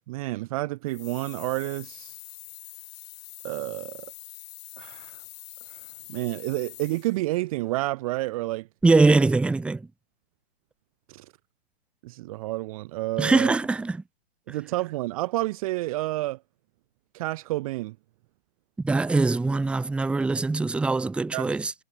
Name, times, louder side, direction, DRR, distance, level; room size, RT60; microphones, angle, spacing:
voice 1, 0.1-2.2 3.4-4.1 4.8-5.2 6.1-8.7 11.1-11.3 12.0-13.6 14.5-16.4 17.1-18.0 21.3-21.5, right 18 dB, 35° right, 0.6 m, -30 dB
sound 1, 0.9-7.3, left 22 dB, 40° left, 3.8 m, -45 dB
voice 2, 8.8-9.9 13.2-14.0 14.5-14.6 18.8-21.7, right 3 dB, 5° right, 0.7 m, -22 dB
hypercardioid pair, 140°, 30 cm